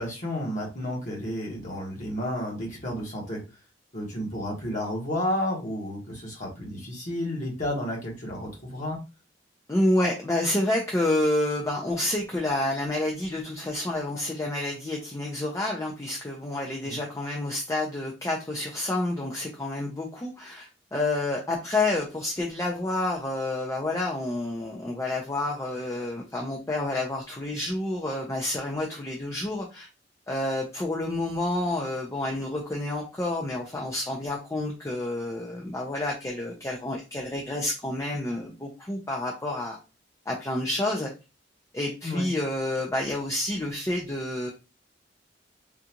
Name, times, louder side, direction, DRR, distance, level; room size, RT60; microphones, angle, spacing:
voice 1, 0.0-3.4 3.9-9.0 16.8-17.0 42.0-42.3, left 1 dB, 45° left, -2 dB, 1.1 m, -31 dB
voice 2, 9.7-29.9 30.3-39.8 40.3-41.1 41.7-44.5, left 1 dB, 15° left, -1 dB, 0.5 m, -29 dB
3.7 x 2.4 x 2.8 m, 0.29 s
head